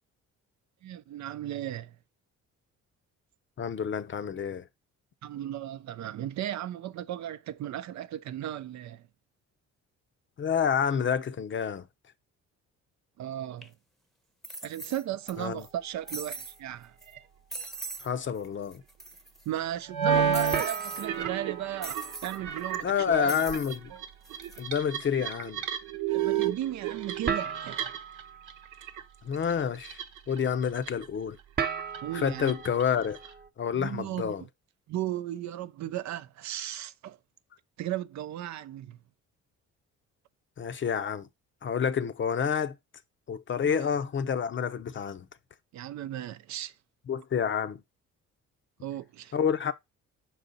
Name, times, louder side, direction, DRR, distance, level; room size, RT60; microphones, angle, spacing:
voice 1, 0.8-1.9 5.2-9.0 13.2-13.7 14.6-16.9 19.5-23.4 26.1-27.8 32.0-32.5 33.7-34.3 34.9-37.2 37.8-39.0 43.6-43.9 45.7-46.7 48.8-49.3, right 12 dB, 65° right, 0.5 m, -36 dB
voice 2, 3.6-4.7 10.4-11.8 15.4-15.6 18.0-18.8 22.8-23.9 24.6-25.6 29.2-30.0 30.3-31.4 32.1-33.2 33.6-34.4 40.6-41.3 41.6-42.7 43.3-45.3 47.1-47.8 49.3-49.7, left 7 dB, 40° left, 0.6 m, -28 dB
sound 1, 13.6-13.7 14.4-15.3 15.6-15.7 16.1-16.6 17.0-17.1 17.5-18.1 18.4-18.5 18.7-19.4 20.3-21.1 21.8-22.4 23.3-23.8 24.2-24.6, right 3 dB, ahead, 0.8 m, -40 dB
sound 2, 15.3-16.8 17.2-17.6 18.1-18.2 20.5-33.5, right 6 dB, 35° right, 0.8 m, -40 dB
sound 3, 17.1-17.2 19.9-20.7 20.9-28.2 28.5-29.0 29.3-30.4 30.8-31.1 31.6-33.3, right 8 dB, 90° right, 0.9 m, -31 dB
6.0 x 4.0 x 4.0 m
cardioid pair, 90°, 30 cm